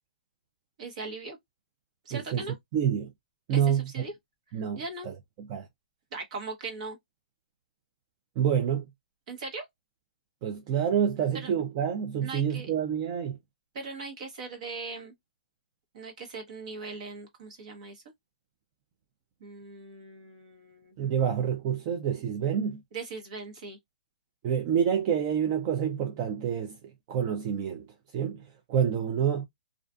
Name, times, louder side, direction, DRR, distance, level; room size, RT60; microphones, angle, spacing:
voice 1, 0.8-1.4 2.0-2.5 3.5-4.1 4.7-5.1 6.1-7.0 9.3-9.7 11.3-11.5 12.2-12.7 13.7-15.1 15.9-18.0 19.4-21.0 22.9-23.8, right 3 dB, 50° right, 1.1 m, -39 dB
voice 2, 2.1-2.4 2.7-3.1 3.5-3.8 4.5-5.7 8.4-8.9 10.4-13.4 21.0-22.8 24.4-26.8 27.1-27.9 28.1-29.5, right 8 dB, 30° right, 0.4 m, -28 dB
2.5 x 2.4 x 2.3 m
hypercardioid pair, 155°, 5 cm